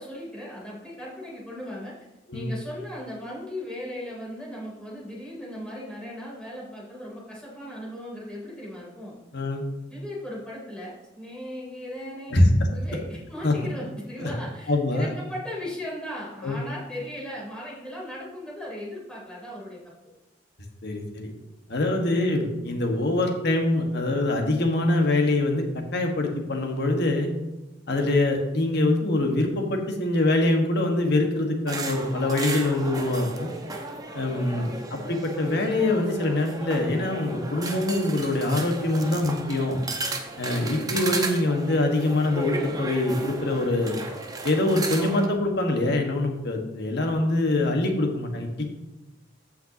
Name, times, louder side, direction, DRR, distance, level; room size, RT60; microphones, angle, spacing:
voice 1, 0.0-1.9 2.3-9.2 9.9-12.4 12.7-19.9 34.3-34.8, left 1 dB, 5° left, -6 dB, 3.3 m, -37 dB
voice 2, 12.3-12.7 13.4-13.6 14.2-14.3 14.7-15.1 16.4-16.6 20.8-21.3 21.7-27.3 27.9-33.5 34.1-34.7 35.1-39.8 40.4-44.0 44.4-48.6, left 2 dB, 60° left, 2 dB, 1.5 m, -24 dB
sound 1, 31.7-45.3, right 2 dB, 20° right, 0.9 m, -34 dB
14.5 x 5.7 x 2.9 m, 1.0 s
head